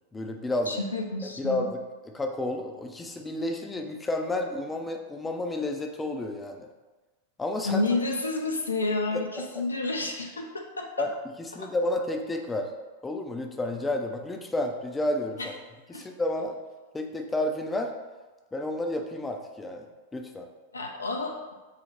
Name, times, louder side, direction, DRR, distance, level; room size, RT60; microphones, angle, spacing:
voice 1, 0.1-0.8 1.4-1.8 2.1-6.7 7.4-7.8 9.1-9.6 11.0-11.1 11.5-12.7 13.0-15.5 15.9-16.6 16.9-17.9 18.5-19.9 20.1-20.5, left 1 dB, 15° left, 4 dB, 0.3 m, -31 dB
voice 2, 0.7-1.7 7.6-11.1 11.5-11.7 15.4-15.5 15.9-16.1 20.7-21.4, left 3 dB, 85° left, 2 dB, 0.4 m, -30 dB
3.9 x 2.0 x 3.0 m, 1.2 s
figure-of-eight pair, 95°, 0 cm